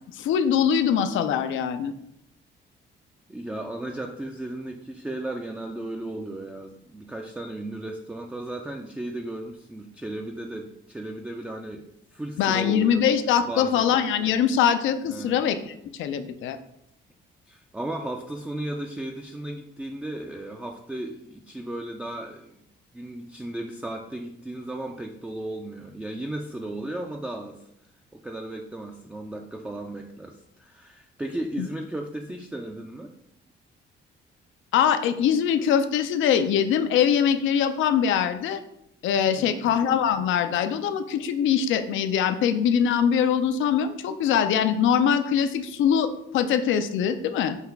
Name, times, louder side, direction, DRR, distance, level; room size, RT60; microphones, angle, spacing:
voice 1, 0.1-1.9 12.4-16.6 31.6-31.7 34.7-38.6 39.0-47.6, left 8 dB, 75° left, 9 dB, 0.4 m, -23 dB
voice 2, 3.3-11.9 12.1-13.0 13.4-13.9 15.1-15.4 17.5-22.5 22.9-27.6 28.1-33.1 39.4-39.7, right 1 dB, 5° right, 2 dB, 0.3 m, -35 dB
5.6 x 2.3 x 3.4 m, 0.77 s
cardioid pair, 90°, 20 cm